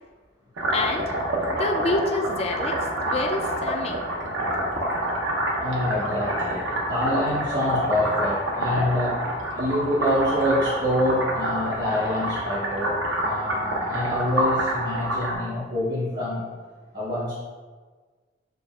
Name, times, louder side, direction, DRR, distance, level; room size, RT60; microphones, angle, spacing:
sound 1, 0.6-15.4, right 1 dB, 90° right, 0.7 m, -27 dB
voice 1, 0.7-1.1 1.5-4.1 4.7-4.8, left 2 dB, 30° left, 3 dB, 0.3 m, -28 dB
voice 2, 5.6-9.2 9.5-16.4 16.9-17.4, left 1 dB, 55° right, -7 dB, 1.0 m, -26 dB
6.5 x 2.3 x 2.3 m, 1.4 s
head